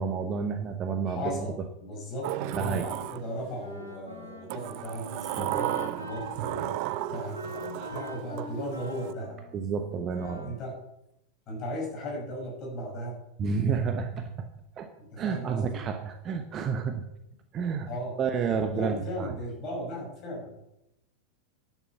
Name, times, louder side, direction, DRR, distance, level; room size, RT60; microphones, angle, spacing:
voice 1, 0.0-1.5 2.5-2.8 5.4-5.6 9.5-10.5 13.4-14.5 14.8-14.9 15.2-17.1 17.5-17.9 18.2-19.3, right 6 dB, 30° right, 7 dB, 1.0 m, -30 dB
voice 2, 1.1-1.6 1.8-9.5 10.2-10.8 11.5-13.2 15.0-15.8 17.9-20.6, equal, 35° left, -1 dB, 6.3 m, -37 dB
Sliding door, 2.2-3.7 4.5-9.1, right 20 dB, 45° right, 0.3 m, -35 dB
Wind instrument woodwind instrument, 3.6-10.7, left 2 dB, 85° left, 2.3 m, -43 dB
11.5 x 8.3 x 6.9 m, 0.82 s
figure-of-eight pair, 90°, 0 cm